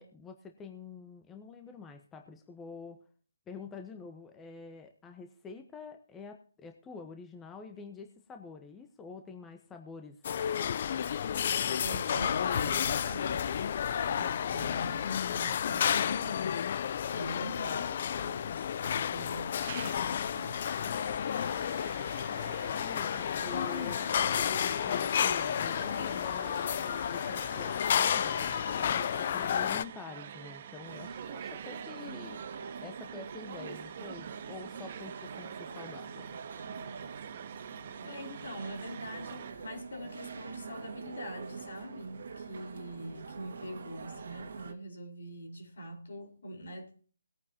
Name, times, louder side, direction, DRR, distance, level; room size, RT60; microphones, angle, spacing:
voice 1, 0.0-3.0 3.5-10.3 22.3-23.1 23.4-24.0 24.3-32.4 32.8-36.3, left 4 dB, 10° left, 1.0 m, -47 dB
sound 1, 10.2-29.8, left 8 dB, 45° left, 0.4 m, -31 dB
voice 2, 11.8-16.6 17.1-21.2 38.0-47.0, equal, 65° left, 4.4 m, -43 dB
sound 2, 19.6-39.5, right 9 dB, 40° right, 0.8 m, -47 dB
sound 3, 30.8-44.7, right 5 dB, 60° right, 1.8 m, -45 dB
20.0 x 9.5 x 2.8 m
figure-of-eight pair, 150°, 0 cm